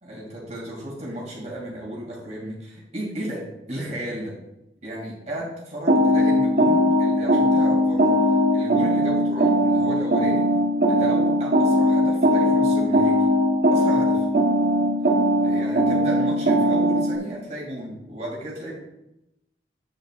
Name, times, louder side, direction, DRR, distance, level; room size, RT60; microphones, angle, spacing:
voice 1, 0.0-4.4 4.8-8.1 8.5-10.5 10.9-13.2 13.7-14.3 15.4-18.7, right 1 dB, 40° right, -4 dB, 2.5 m, -34 dB
sound 1, 5.9-17.2, equal, 60° right, 1.1 m, -20 dB
9.2 x 8.9 x 2.5 m, 0.88 s
head